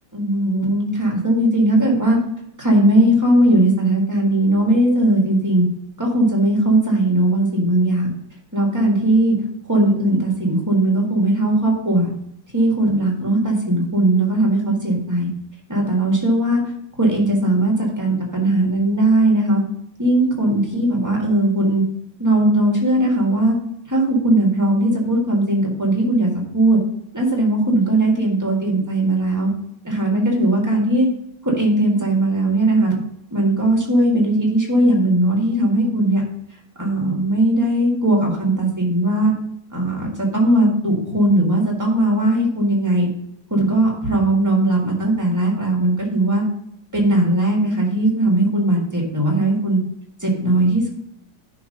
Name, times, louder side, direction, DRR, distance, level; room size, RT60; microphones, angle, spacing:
voice 1, 0.1-2.2 2.6-5.6 6.0-8.1 8.5-9.4 9.7-12.1 12.5-15.3 15.7-16.6 17.0-19.6 20.0-21.8 22.2-23.6 23.9-26.8 27.1-29.5 29.8-31.1 31.4-33.0 33.3-36.2 36.8-39.3 39.7-43.1 43.5-46.4 46.9-49.8 50.2-50.9, right 1 dB, 10° right, -1 dB, 1.7 m, -18 dB
10.5 x 3.8 x 5.4 m, 0.75 s
omnidirectional pair, 2.1 m